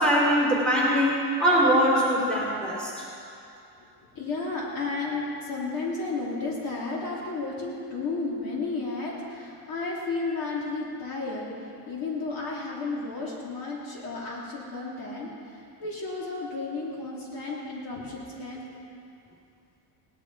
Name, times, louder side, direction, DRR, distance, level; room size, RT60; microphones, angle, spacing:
voice 1, 0.0-3.1, equal, ahead, -6 dB, 2.8 m, -22 dB
voice 2, 4.1-11.4 11.9-18.7, left 3 dB, 50° left, -4 dB, 2.9 m, -33 dB
18.0 x 11.0 x 4.7 m, 2.6 s
cardioid pair, 160°, 43 cm